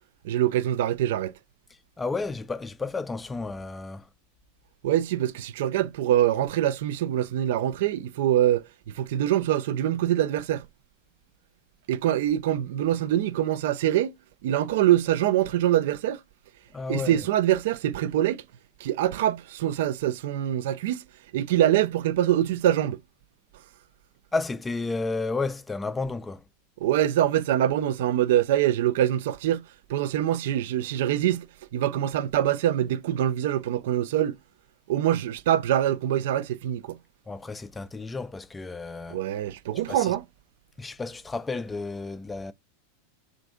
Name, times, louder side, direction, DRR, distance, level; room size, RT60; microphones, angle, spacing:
voice 1, 0.2-1.3 4.8-10.7 11.9-14.1 14.4-16.2 16.9-18.4 18.8-21.0 21.3-23.0 26.8-29.6 29.9-31.5 31.7-34.4 34.9-37.0 39.1-40.2, right 12 dB, 60° right, 0.3 m, -24 dB
voice 2, 2.0-4.1 16.7-17.2 24.3-26.4 37.3-39.2 39.9-40.1 40.8-42.5, left 3 dB, 15° left, 0.4 m, -32 dB
3.3 x 2.5 x 3.6 m
figure-of-eight pair, 90°, 0 cm